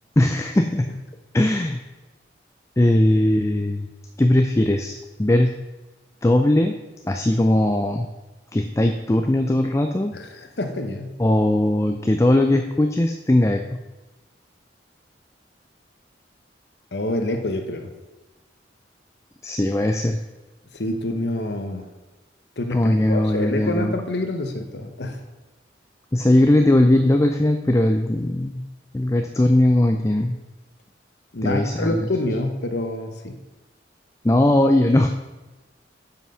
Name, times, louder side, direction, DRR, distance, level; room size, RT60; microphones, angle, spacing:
voice 1, 0.2-0.9 1.3-1.8 2.8-3.9 4.2-5.5 6.2-6.7 7.0-8.1 8.5-10.1 11.2-13.6 19.4-20.2 22.7-23.9 26.1-28.6 28.9-30.4 31.4-32.0 34.2-35.1, left 1 dB, 15° left, 5 dB, 0.4 m, -19 dB
voice 2, 10.1-11.2 16.9-17.9 20.7-21.9 22.6-25.2 31.3-33.4, left 1 dB, 60° left, 6 dB, 1.0 m, -27 dB
9.3 x 5.8 x 5.6 m, 1.1 s
head